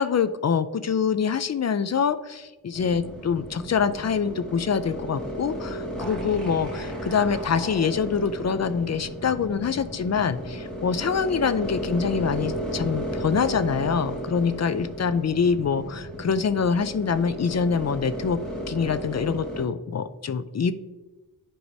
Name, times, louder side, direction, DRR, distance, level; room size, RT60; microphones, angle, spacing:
voice 1, 0.0-18.4 18.7-20.7, left 6 dB, 45° left, 13 dB, 0.4 m, -25 dB
sound 1, 2.7-19.6, equal, ahead, 2.3 m, -34 dB
11.0 x 4.7 x 2.7 m, 1.2 s
wide cardioid pair, 85°, 39 cm